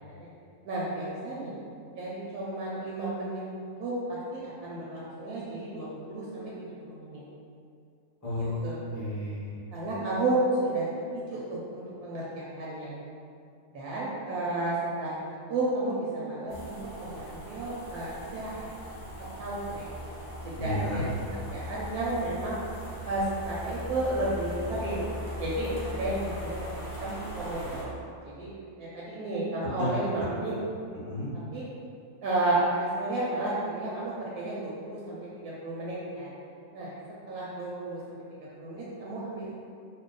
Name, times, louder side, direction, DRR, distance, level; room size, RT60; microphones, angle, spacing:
voice 1, 0.6-1.6 1.9-3.4 3.8-6.5 6.8-7.2 8.6-8.8 9.7-10.9 11.1-12.9 13.7-15.2 15.5-18.7 19.4-19.8 20.4-21.1 21.5-22.6 23.0-25.1 25.4-26.6 27.0-27.9 28.2-30.5 31.5-31.6 32.2-36.3 36.7-36.9 37.3-38.2 38.6-39.5, right 2 dB, 75° right, -6 dB, 1.0 m, -32 dB
voice 2, 8.2-9.5 20.6-21.0 29.8-29.9 31.0-31.3, left 1 dB, 20° left, -11 dB, 0.5 m, -32 dB
sound 1, 16.5-27.8, equal, 80° left, 0.4 m, -39 dB
2.8 x 2.1 x 3.7 m, 2.4 s
omnidirectional pair, 1.8 m